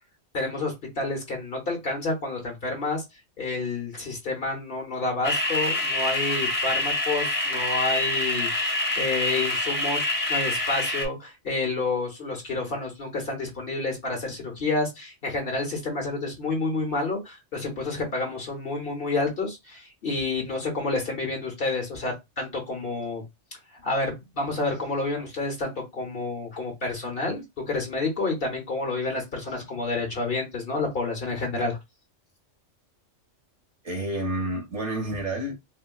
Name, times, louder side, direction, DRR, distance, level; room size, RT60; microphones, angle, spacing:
voice 1, 0.3-3.0 3.4-23.2 23.8-31.8, left 3 dB, 50° left, 1.2 m, -29 dB
sound 1, 5.2-11.1, left 2 dB, 20° left, 0.7 m, -26 dB
voice 2, 33.8-35.5, right 1 dB, 65° right, 1.4 m, -29 dB
4.3 x 2.2 x 2.3 m
omnidirectional pair, 1.3 m